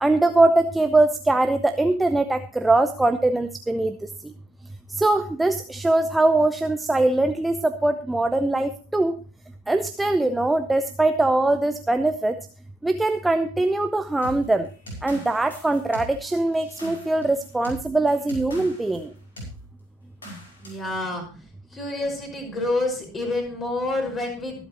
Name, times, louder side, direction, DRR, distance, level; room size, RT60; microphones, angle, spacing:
voice 1, 0.0-4.1 4.9-9.2 9.7-12.4 12.8-14.7 15.0-19.1, right 2 dB, 5° right, 9 dB, 0.7 m, -22 dB
sound 1, 14.2-19.0 19.4-19.6 20.2-20.9, equal, 70° left, 5.6 m, -40 dB
voice 2, 20.6-21.2 21.7-24.5, left 2 dB, 20° left, 2 dB, 5.3 m, -28 dB
23.5 x 8.1 x 3.0 m, 0.36 s
figure-of-eight pair, 90°, 0 cm